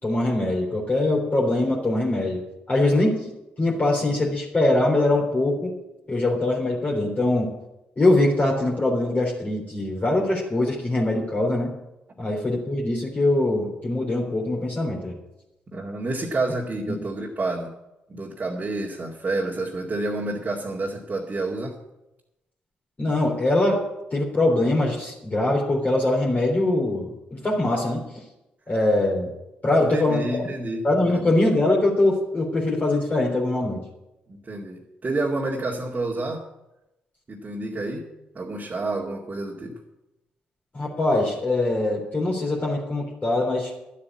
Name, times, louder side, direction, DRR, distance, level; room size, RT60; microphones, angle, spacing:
voice 1, 0.0-2.4 2.7-3.3 3.6-5.7 6.1-7.5 8.0-11.7 12.2-15.1 16.9-17.0 23.0-23.8 24.1-28.0 28.7-29.3 29.6-30.4 30.8-33.8 40.7-43.7, left 2 dB, 30° left, -3 dB, 3.6 m, -22 dB
voice 2, 15.7-17.7 18.1-21.8 29.8-30.9 31.1-31.3 34.3-36.4 37.3-38.1 38.3-39.8, right 2 dB, 35° right, -3 dB, 2.2 m, -29 dB
12.5 x 8.4 x 8.4 m, 0.94 s
figure-of-eight pair, 40°, 5 cm